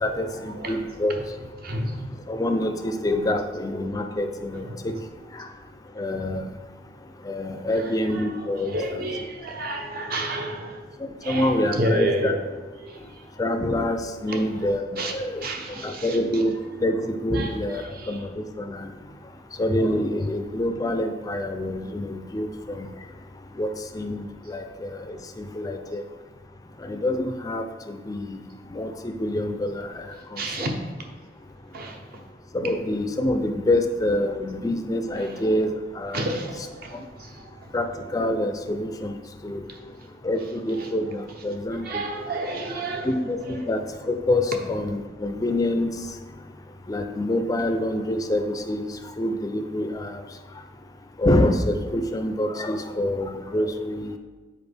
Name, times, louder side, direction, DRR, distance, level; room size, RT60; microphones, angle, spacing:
voice 1, 0.0-1.2 2.3-4.9 5.4-5.5 6.0-6.5 7.3-8.7 11.3-12.3 13.4-18.9 19.6-22.9 23.6-26.0 26.8-28.4 28.7-30.7 32.5-36.3 37.7-37.9 38.1-39.6 40.2-42.0 43.0-43.8 44.1-45.9 46.9-48.9 49.2-50.2 51.2-54.2, left 1 dB, 20° left, 7 dB, 0.4 m, -26 dB
voice 2, 1.6-2.1 8.7-10.8 11.2-11.5 11.8-12.3 12.8-13.0 15.0-15.1 15.4-16.2 17.4-17.5 30.4-30.7 31.7-32.0 36.1-37.4 41.9-43.1, right 1 dB, 55° right, 3 dB, 0.8 m, -29 dB
7.1 x 4.4 x 3.3 m, 1.3 s
head